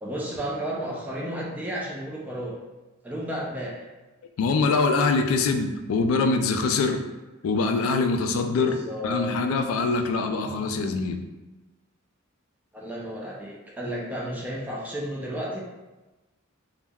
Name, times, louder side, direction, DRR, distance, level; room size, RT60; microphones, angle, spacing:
voice 1, 0.0-2.6 3.0-3.9 8.5-9.4 12.7-15.6, right 1 dB, 10° right, -4 dB, 0.4 m, -33 dB
voice 2, 4.4-7.0 7.4-8.8 9.0-11.2, left 4 dB, 80° left, 7 dB, 0.3 m, -24 dB
3.4 x 2.0 x 2.2 m, 1.1 s
head